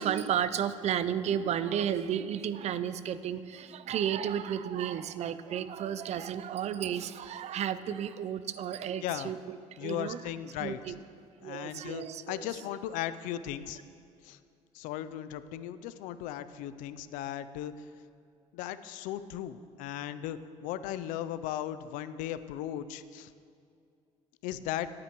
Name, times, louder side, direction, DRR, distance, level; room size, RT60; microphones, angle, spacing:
voice 1, 0.0-10.2 10.6-11.0 11.4-12.5, right 9 dB, 55° right, 14 dB, 0.5 m, -33 dB
voice 2, 9.8-11.0 11.4-13.8 14.2-14.4 14.7-17.9 18.5-23.3 24.4-24.9, left 11 dB, 80° left, 13 dB, 0.5 m, -37 dB
18.5 x 8.7 x 3.1 m, 2.4 s
supercardioid pair, 70°, 13 cm